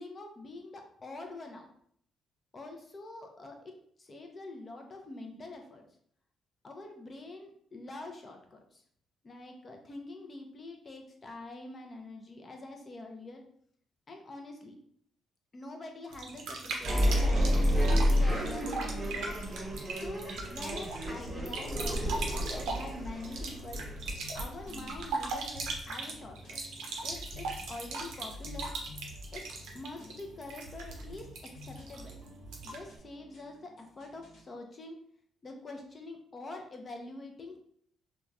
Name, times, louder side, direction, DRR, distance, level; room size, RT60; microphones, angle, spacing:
voice 1, 0.0-1.7 2.5-3.7 4.0-5.8 6.6-8.8 9.2-13.4 14.1-14.8 15.5-19.4 19.9-23.8 24.3-26.6 27.0-28.7 29.3-29.4 29.7-31.3 31.5-32.2 32.6-35.0 35.4-37.6, left 2 dB, 35° left, 3 dB, 0.5 m, -45 dB
sound 1, 16.1-33.0, right 3 dB, 90° right, 0.5 m, -40 dB
sound 2, 16.8-25.4, equal, 20° right, 0.9 m, -30 dB
sound 3, 23.7-34.4, left 1 dB, 65° left, 0.9 m, -50 dB
2.9 x 2.2 x 2.5 m, 0.64 s
cardioid pair, 90°, 0 cm